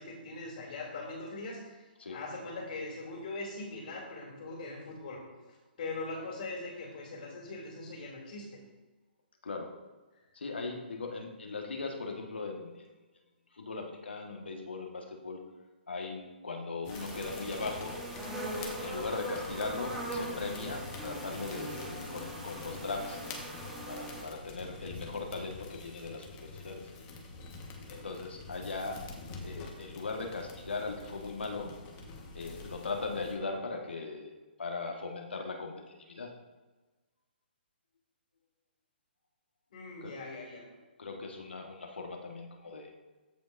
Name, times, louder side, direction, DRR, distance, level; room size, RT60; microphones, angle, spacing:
voice 1, 0.0-5.2 5.5-8.6 39.7-40.6, left 2 dB, 55° left, -3 dB, 2.6 m, -41 dB
voice 2, 9.4-9.7 10.3-12.9 13.5-15.4 15.9-18.0 18.6-26.9 27.9-29.1 29.4-31.8 32.3-34.3 34.6-36.3 40.0-40.2 41.0-42.9, left 3 dB, 85° left, 2 dB, 1.5 m, -39 dB
sound 1, 16.8-33.4, left 3 dB, 25° left, 1.4 m, -47 dB
sound 2, 16.9-24.2, right 1 dB, 5° right, 1.5 m, -40 dB
14.5 x 5.2 x 2.6 m, 1.2 s
hypercardioid pair, 145°, 6 cm